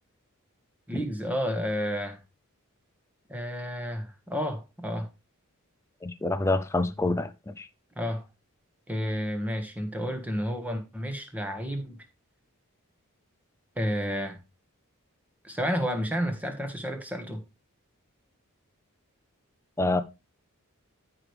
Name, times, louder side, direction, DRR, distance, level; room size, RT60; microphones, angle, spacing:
voice 1, 0.9-2.2 3.3-5.1 7.9-8.2 8.9-12.0 13.8-14.4 15.4-17.4, equal, 5° right, 1.5 m, -31 dB
voice 2, 6.0-7.7 19.8-20.0, left 2 dB, 15° left, 0.5 m, -27 dB
13.5 x 4.9 x 3.4 m
head